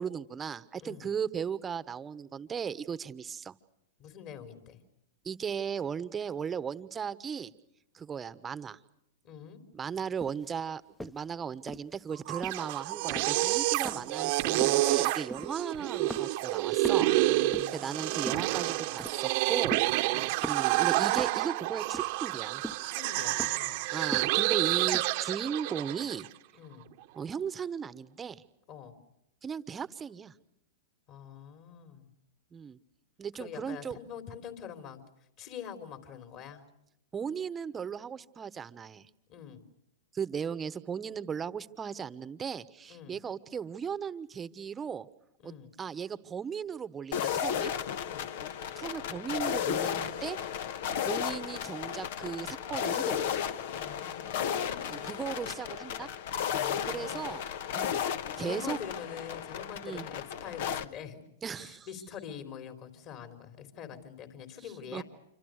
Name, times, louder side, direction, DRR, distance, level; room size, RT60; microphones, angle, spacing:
voice 1, 0.0-3.6 5.2-7.5 7.9-8.8 9.7-17.1 17.7-22.6 23.9-26.3 27.1-28.4 29.4-30.3 32.5-32.8 33.2-34.0 37.1-39.1 40.1-45.1 45.4-47.7 48.8-50.4 51.0-53.2 54.9-56.1 56.9-57.5 57.7-58.0 58.4-58.8 59.8-60.1 61.4-61.9 64.9-65.0, right 7 dB, 20° right, 15 dB, 1.2 m, -36 dB
voice 2, 4.0-4.8 9.2-9.6 13.8-14.0 17.3-19.0 20.1-20.3 22.8-23.8 26.6-26.9 28.7-29.0 31.1-32.1 33.4-35.0 35.4-36.6 39.3-39.7 42.9-43.2 45.4-45.7 48.0-48.3 53.7-55.2 56.5-57.3 58.4-61.2 61.6-65.0, left 8 dB, 45° left, 8 dB, 4.0 m, -45 dB
sound 1, 10.2-10.5 11.0-11.3 11.7-12.0 12.4-12.7 13.2-13.6 13.9-14.1 14.6-14.9 15.3-15.8 16.1-16.5 16.8-17.8 18.3-18.6 19.0-19.3 19.7-20.1 20.4-20.7 21.2-21.5 21.9-22.4 22.6-22.9 23.4-23.7 24.1-24.5 24.9-25.1, equal, 5° left, 1.0 m, -41 dB
sound 2, 12.1-26.3, right 18 dB, 55° right, 1.1 m, -29 dB
sound 3, 47.1-60.8, left 8 dB, 60° left, 1.3 m, -34 dB
27.0 x 25.5 x 6.6 m, 0.80 s
hypercardioid pair, 110°, 0 cm